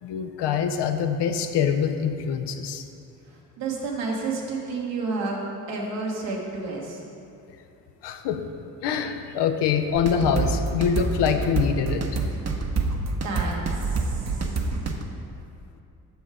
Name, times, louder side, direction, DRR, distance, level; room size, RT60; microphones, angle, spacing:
voice 1, 0.0-2.8 8.0-8.5 8.8-12.1, left 7 dB, 65° left, 7 dB, 0.7 m, -24 dB
voice 2, 3.6-7.0 13.2-14.5, right 3 dB, 75° right, -2 dB, 1.5 m, -30 dB
sound 1, 10.0-15.0, right 3 dB, 35° right, 0.9 m, -27 dB
6.5 x 6.3 x 4.8 m, 2.6 s
hypercardioid pair, 45°, 45 cm